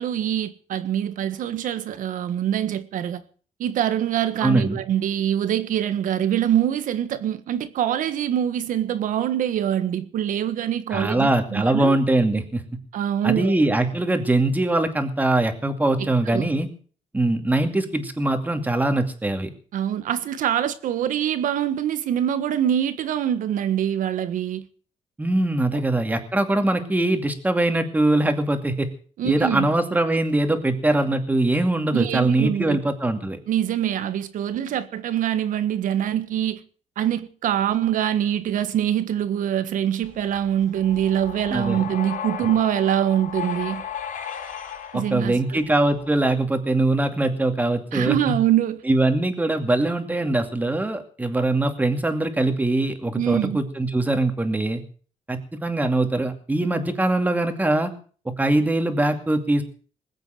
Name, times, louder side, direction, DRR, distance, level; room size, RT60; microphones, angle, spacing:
voice 1, 0.0-3.2 3.6-12.0 12.9-13.5 16.0-16.5 19.7-24.6 29.2-29.7 31.9-32.8 33.5-36.6 37.0-43.8 44.9-45.6 47.9-48.8 53.1-53.6, right 10 dB, 90° right, 1.5 m, -24 dB
voice 2, 4.4-4.8 10.9-12.6 13.2-16.7 17.1-19.5 25.2-28.9 29.2-33.4 41.5-41.8 44.9-48.4 48.9-54.8 55.3-57.9 58.2-59.6, right 2 dB, 10° right, 2.5 m, -22 dB
sound 1, 40.0-46.2, left 8 dB, 85° left, 5.7 m, -35 dB
20.5 x 8.2 x 7.8 m
cardioid pair, 130°, 13 cm